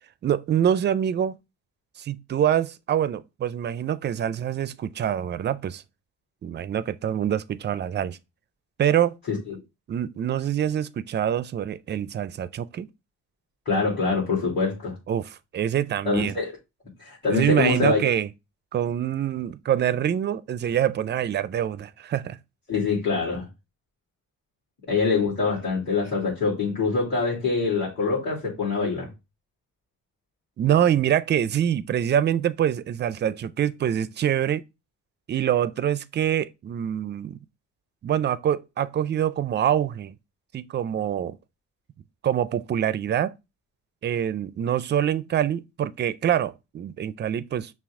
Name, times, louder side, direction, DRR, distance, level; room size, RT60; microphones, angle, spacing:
voice 1, 0.2-1.4 2.0-5.8 6.4-8.2 8.8-9.2 9.9-12.9 15.1-16.4 17.3-18.3 18.7-22.4 30.6-34.6 35.3-37.4 38.0-40.1 40.5-41.3 42.2-43.3 44.0-47.7, right 10 dB, 35° right, 0.4 m, -25 dB
voice 2, 9.3-9.6 13.7-15.0 16.0-16.5 17.0-18.1 22.7-23.5 24.9-29.1, left 4 dB, 35° left, 2.5 m, -24 dB
5.7 x 2.4 x 3.6 m
cardioid pair, 90°, 30 cm